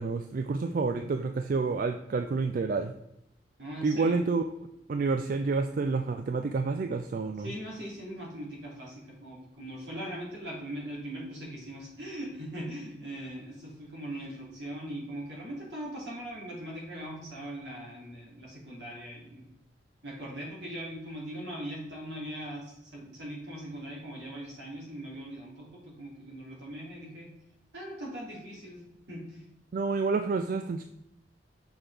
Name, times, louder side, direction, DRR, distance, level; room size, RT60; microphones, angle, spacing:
voice 1, 0.0-2.9 3.8-4.5 4.9-7.5 29.7-30.8, right 4 dB, 50° right, 6 dB, 0.3 m, -29 dB
voice 2, 3.6-4.2 7.4-19.4 20.0-27.3 27.7-29.4, right 1 dB, 75° right, -3 dB, 2.5 m, -40 dB
6.1 x 5.7 x 3.3 m, 0.83 s
head